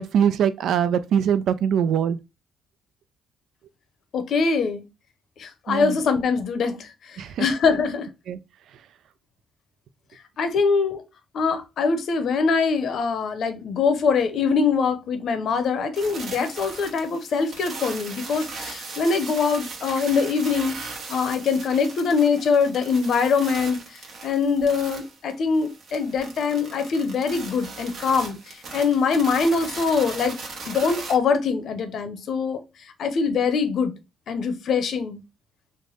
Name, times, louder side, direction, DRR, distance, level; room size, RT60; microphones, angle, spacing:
voice 1, 0.0-2.2 5.7-6.0 7.2-7.5 8.3-8.4, right 8 dB, 75° right, 0.3 m, -22 dB
voice 2, 4.1-4.8 5.4-8.1 10.4-11.0 11.3-30.4 30.7-32.6 33.0-33.9 34.3-35.2, left 5 dB, 65° left, 0.7 m, -23 dB
Electromagnetic Mic on Sony Xperia, 15.9-31.2, right 3 dB, 60° right, 1.1 m, -38 dB
3.3 x 2.1 x 3.8 m
cardioid pair, 90°, 0 cm